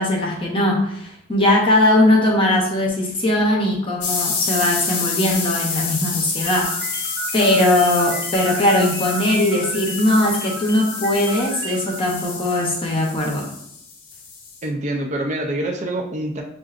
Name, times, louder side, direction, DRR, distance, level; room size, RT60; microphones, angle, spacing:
voice 1, 0.0-7.0 7.3-13.5, left 1 dB, 25° left, -1 dB, 0.7 m, -19 dB
sound 1, 4.0-14.6, left 5 dB, 90° left, 0.7 m, -28 dB
sound 2, 6.4-12.2, right 3 dB, 15° right, 0.9 m, -33 dB
voice 2, 14.6-16.4, right 1 dB, 35° right, 1 dB, 0.4 m, -25 dB
6.6 x 2.5 x 2.4 m, 0.74 s
head